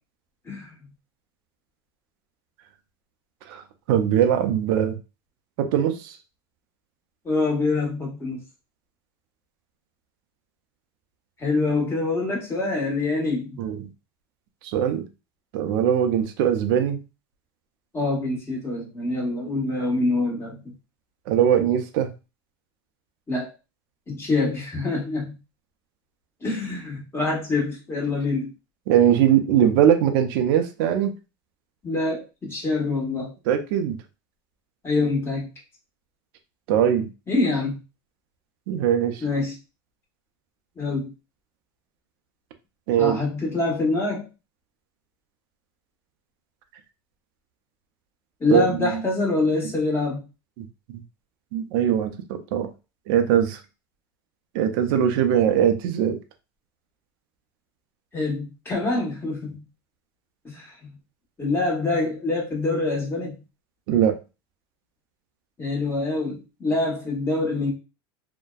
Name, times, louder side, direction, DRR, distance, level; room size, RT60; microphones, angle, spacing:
voice 1, 3.5-5.0 5.6-6.2 13.6-13.9 14.6-15.0 15.5-17.0 21.3-22.1 28.9-31.1 33.5-34.0 36.7-37.1 38.7-39.2 42.9-43.2 48.5-49.0 50.6-50.7 50.9-51.0 51.5-52.7 53.1-53.6 54.5-56.2 63.9-64.2, right 9 dB, 70° right, 8 dB, 0.5 m, -21 dB
voice 2, 7.2-8.4 11.4-13.6 17.9-20.6 23.3-23.5 24.1-25.3 26.4-28.5 31.8-33.3 34.8-35.5 37.3-37.8 39.2-39.5 40.8-41.1 43.0-44.3 48.4-50.2 58.1-59.6 60.4-60.7 61.4-63.4 65.6-67.7, left 3 dB, 20° left, -2 dB, 1.2 m, -25 dB
2.6 x 2.1 x 2.3 m, 0.29 s
supercardioid pair, 110°, 12 cm